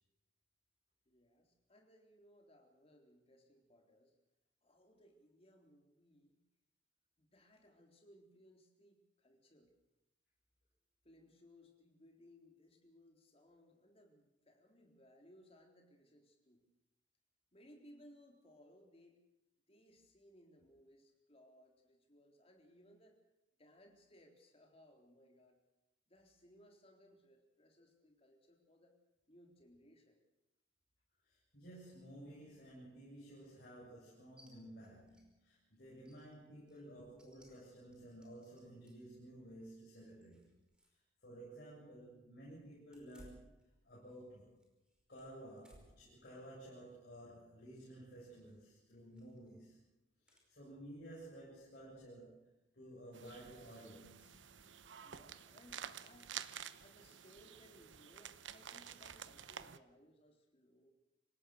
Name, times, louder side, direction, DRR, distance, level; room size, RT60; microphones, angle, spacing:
voice 1, 1.1-4.2 4.6-6.4 7.2-9.7 11.0-16.6 17.5-19.2 19.7-23.2 23.6-25.6 26.1-29.0 29.3-30.2 55.0-56.3 56.8-60.9, equal, 30° left, 2 dB, 3.9 m, -64 dB
voice 2, 31.2-40.4 41.2-44.7 45.1-49.8 50.2-54.6, right 1 dB, 55° left, -6 dB, 7.8 m, -54 dB
sound 1, 34.4-34.5 34.8-35.3 35.6-35.7 36.0-39.1 39.7-41.0 41.3-41.4 42.8-44.3 44.6-46.1 46.6-46.9 48.3-48.6 49.1-49.5 50.3-50.5, equal, 5° right, 5.1 m, -66 dB
sound 2, 53.1-59.8, right 8 dB, 75° right, 0.9 m, -51 dB
26.5 x 17.0 x 6.6 m, 0.92 s
head